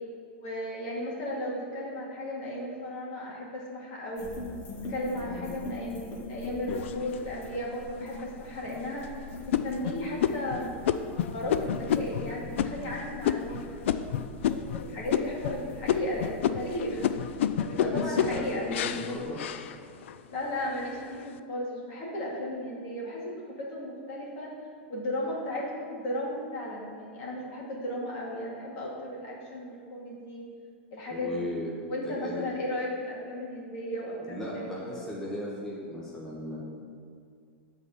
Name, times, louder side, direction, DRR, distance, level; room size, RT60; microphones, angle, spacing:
voice 1, 0.3-4.3 4.9-9.1 9.4-17.1 17.6-18.7 20.3-23.2 23.5-24.5 24.9-30.4 30.9-31.5 31.9-35.2, left 1 dB, 50° left, -4 dB, 2.3 m, -35 dB
sound 1, 4.2-19.3, left 2 dB, 35° left, 1.2 m, -43 dB
sound 2, 6.7-7.5 8.1-8.2 8.7-9.0 9.5-14.8 15.1-15.6 15.9-20.2 20.7-21.2, left 9 dB, 75° left, 0.4 m, -30 dB
voice 2, 17.8-19.4 31.1-31.7 32.0-32.4 34.3-36.6, left 1 dB, 5° left, -7 dB, 1.4 m, -36 dB
8.2 x 4.2 x 7.0 m, 2.2 s
supercardioid pair, 145°, 7 cm